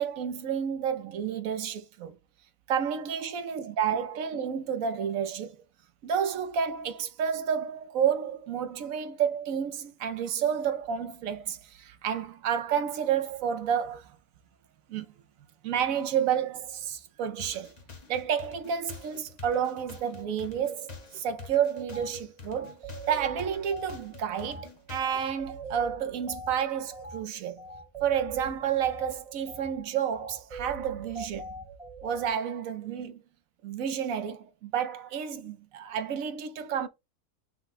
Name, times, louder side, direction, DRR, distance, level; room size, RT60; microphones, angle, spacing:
voice 1, 0.0-2.2 2.7-5.6 6.0-14.2 14.9-15.1 15.6-17.7 18.1-22.7 23.1-27.6 28.0-31.5 32.0-33.2 33.6-36.9, right 8 dB, 70° right, 1.1 m, -30 dB
sound 1, 17.4-25.3, left 5 dB, 35° left, 0.9 m, -47 dB
sound 2, 21.9-22.1 22.6-32.3, right 3 dB, 25° right, 1.1 m, -42 dB
5.8 x 2.2 x 4.1 m
omnidirectional pair, 1.5 m